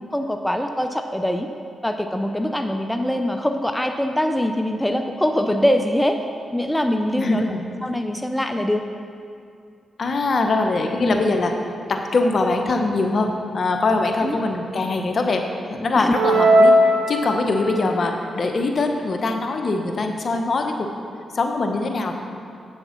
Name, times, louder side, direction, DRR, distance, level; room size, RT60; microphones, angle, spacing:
voice 1, 0.1-1.5 1.8-6.2 6.5-7.4 7.8-8.8 11.0-11.2 14.2-14.4 16.0-16.1, left 1 dB, 5° left, 5 dB, 0.6 m, -23 dB
voice 2, 7.2-7.6 10.0-11.5 11.9-15.4 15.7-16.8 17.1-20.9 21.3-22.1, left 3 dB, 55° left, 4 dB, 1.0 m, -22 dB
sound 1, 16.1-17.8, equal, 80° right, 1.0 m, -16 dB
8.0 x 7.0 x 5.9 m, 2.5 s
cardioid pair, 55°, 0 cm